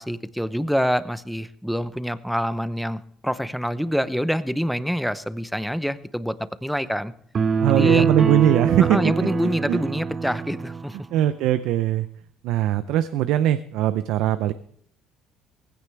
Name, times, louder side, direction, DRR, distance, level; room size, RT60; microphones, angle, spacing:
voice 1, 0.0-6.4 6.6-7.1 7.8-8.1 8.8-11.0, equal, ahead, 14 dB, 0.7 m, -26 dB
sound 1, 7.3-10.9, right 5 dB, 35° right, 0.9 m, -24 dB
voice 2, 7.6-9.3 9.7-9.8 11.1-12.1 12.4-14.5, right 12 dB, 80° right, 12 dB, 0.6 m, -21 dB
18.0 x 16.0 x 3.4 m, 0.62 s
cardioid pair, 120°, 0 cm